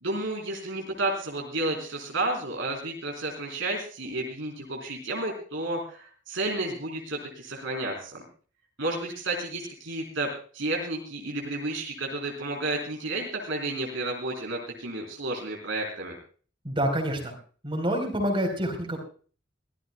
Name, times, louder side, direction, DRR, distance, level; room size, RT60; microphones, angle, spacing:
voice 1, 0.0-8.2 8.8-16.1, right 2 dB, 70° right, 0 dB, 3.6 m, -31 dB
voice 2, 16.6-17.3 17.6-19.0, equal, 25° right, 1 dB, 3.9 m, -27 dB
23.5 x 16.5 x 2.2 m, 0.40 s
head